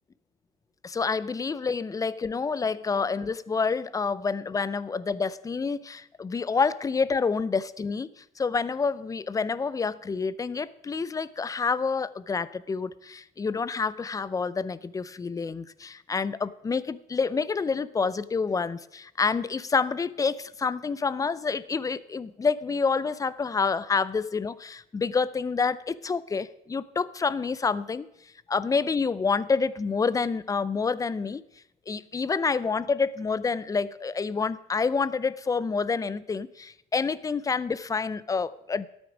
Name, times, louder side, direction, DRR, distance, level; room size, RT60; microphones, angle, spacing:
voice 1, 0.8-28.1 28.5-31.4 31.9-38.9, left 5 dB, 20° left, 18 dB, 0.5 m, -28 dB
13.0 x 8.9 x 5.0 m, 0.81 s
cardioid pair, 110°, 17 cm